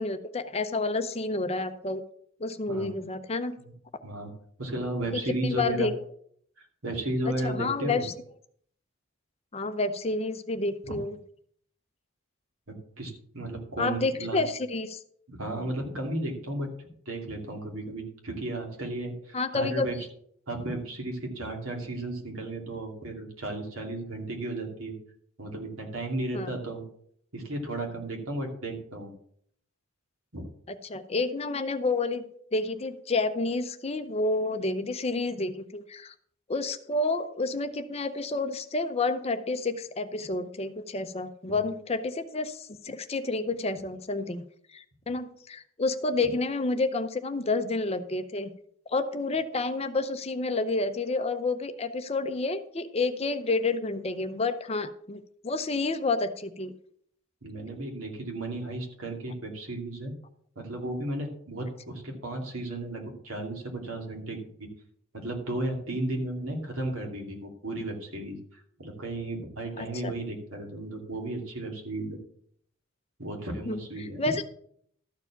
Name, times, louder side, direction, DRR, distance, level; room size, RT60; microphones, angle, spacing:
voice 1, 0.0-2.0 2.4-3.6 5.4-5.9 7.4-8.1 9.5-11.2 13.8-15.0 19.3-19.9 26.3-26.5 30.7-32.2 32.5-36.1 36.5-44.4 44.7-48.5 48.9-56.7 69.8-70.1 73.7-74.4, left 3 dB, 30° left, 10 dB, 0.6 m, -29 dB
voice 2, 4.6-5.9 6.6-8.0 10.8-11.0 12.7-14.4 15.3-20.0 20.5-24.9 25.4-26.8 27.3-29.1 30.3-30.5 41.5-41.6 57.4-60.1 60.6-64.7 65.1-72.2 73.2-74.2, right 1 dB, 75° right, 1 dB, 2.6 m, -34 dB
13.0 x 4.8 x 7.1 m, 0.64 s
head